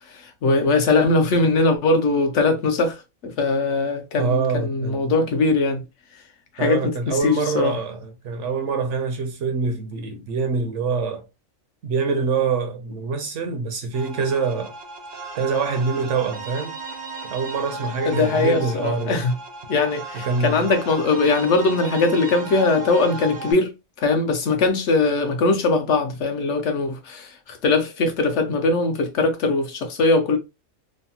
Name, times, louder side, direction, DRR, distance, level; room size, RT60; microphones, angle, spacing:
voice 1, 0.1-5.8 6.5-7.7 18.1-19.3 19.7-23.7 24.0-30.4, left 3 dB, 65° left, 0.9 m, -21 dB
voice 2, 4.2-5.1 6.6-11.2 11.8-14.7 15.4-16.8 17.3-19.2 20.2-20.6, right 4 dB, 70° right, 0.9 m, -25 dB
sound 1, 13.9-23.5, right 3 dB, 50° right, 0.5 m, -35 dB
3.1 x 2.0 x 2.7 m
omnidirectional pair, 1.4 m